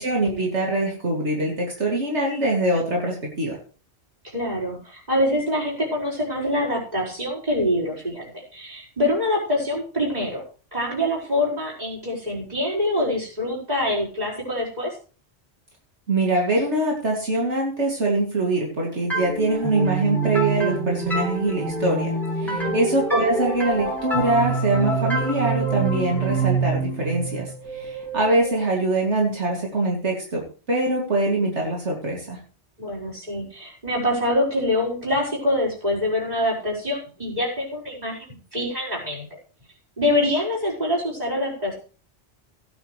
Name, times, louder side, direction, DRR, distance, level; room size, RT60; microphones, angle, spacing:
voice 1, 0.0-3.6 16.1-22.1 22.4-30.4 30.7-32.4, right 2 dB, 85° right, -2 dB, 2.9 m, -23 dB
voice 2, 4.3-10.4 10.7-14.9 22.4-22.7 32.8-39.3 40.0-41.7, left 1 dB, 35° right, -4 dB, 5.3 m, -25 dB
sound 1, 19.1-28.6, right 3 dB, ahead, 3.5 m, -26 dB
16.0 x 10.0 x 3.3 m, 0.38 s
omnidirectional pair, 1.2 m